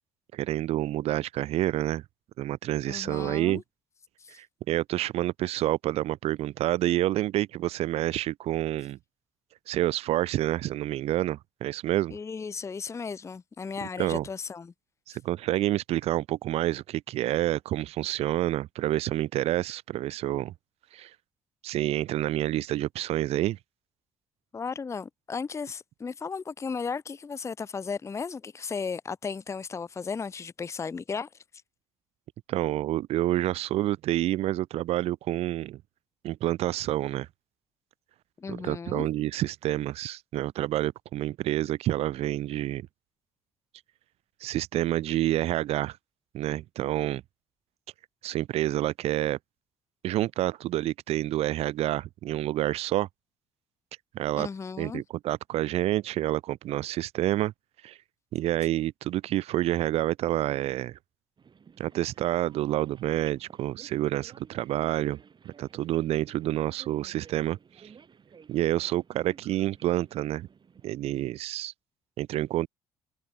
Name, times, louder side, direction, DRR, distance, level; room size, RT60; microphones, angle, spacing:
voice 1, 0.3-2.0 2.4-3.6 4.3-9.0 9.7-12.2 13.8-14.3 15.1-20.5 20.9-21.1 21.6-23.6 32.5-35.8 36.2-37.3 38.5-42.9 44.4-46.0 46.3-47.2 48.2-49.4 50.0-53.1 54.1-54.5 54.8-57.5 57.8-58.0 58.3-61.0 61.8-65.2 65.4-67.6 68.5-70.5 70.8-71.7 72.2-72.7, right 14 dB, 65° right, 0.9 m, -28 dB
voice 2, 2.9-3.6 4.2-4.4 12.1-14.7 24.5-31.3 38.4-39.1 54.4-55.0, left 5 dB, 25° left, 0.5 m, -35 dB
sound 1, 61.4-70.9, right 6 dB, 45° right, 6.4 m, -54 dB
hypercardioid pair, 55°, 11 cm